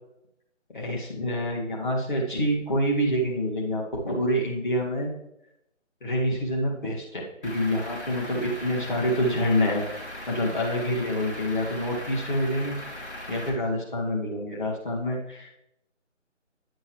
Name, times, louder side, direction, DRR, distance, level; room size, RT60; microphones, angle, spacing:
voice 1, 0.7-5.1 6.0-9.8 10.3-12.8 13.3-15.5, equal, 40° left, -2 dB, 2.1 m, -27 dB
Truck / Idling, 7.4-13.5, left 1 dB, 60° left, 3.4 m, -39 dB
10.5 x 7.7 x 3.2 m, 0.83 s
figure-of-eight pair, 165°, 38 cm